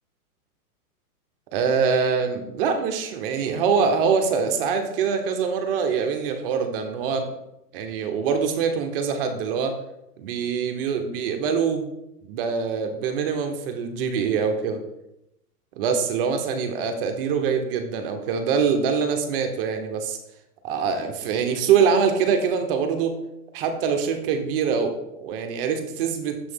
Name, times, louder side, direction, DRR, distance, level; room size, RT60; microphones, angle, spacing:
voice 1, 1.5-7.3 7.7-9.7 10.2-11.9 12.2-14.8 15.8-20.2 20.6-23.2 23.5-26.4, right 6 dB, 35° right, 6 dB, 0.9 m, -24 dB
7.0 x 3.2 x 5.5 m, 0.85 s
hypercardioid pair, 145°, 47 cm